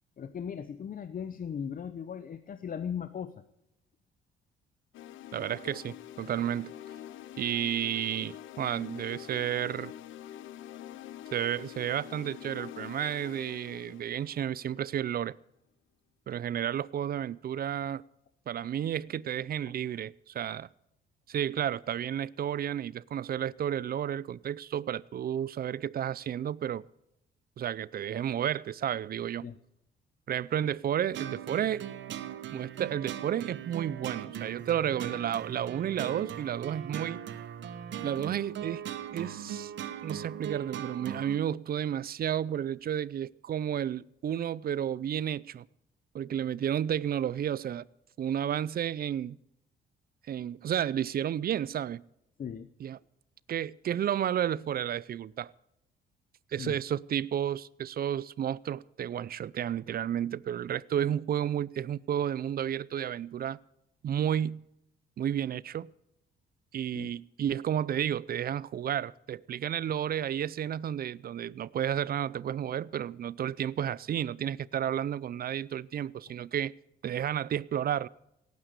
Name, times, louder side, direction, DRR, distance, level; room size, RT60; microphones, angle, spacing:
voice 1, 0.2-3.3 29.4-29.6 52.4-52.7 56.6-56.8 66.9-67.1, left 7 dB, 45° left, 0.8 m, -38 dB
sound 1, 4.9-15.0, left 12 dB, 80° left, 0.7 m, -46 dB
voice 2, 5.3-6.7 7.4-9.9 11.3-15.3 16.3-18.0 18.5-20.7 21.3-26.8 27.6-29.5 30.3-31.8 32.5-37.2 38.0-38.8 39.1-39.7 40.0-45.6 46.1-47.9 48.2-49.4 50.3-52.0 52.8-53.0 53.5-55.5 56.5-63.6 64.0-64.6 65.2-65.9 66.7-76.7 77.0-78.1, right 10 dB, 50° right, 0.5 m, -32 dB
sound 2, 31.1-41.4, right 9 dB, 70° right, 1.2 m, -39 dB
17.5 x 9.5 x 6.6 m
cardioid pair, 90°, 20 cm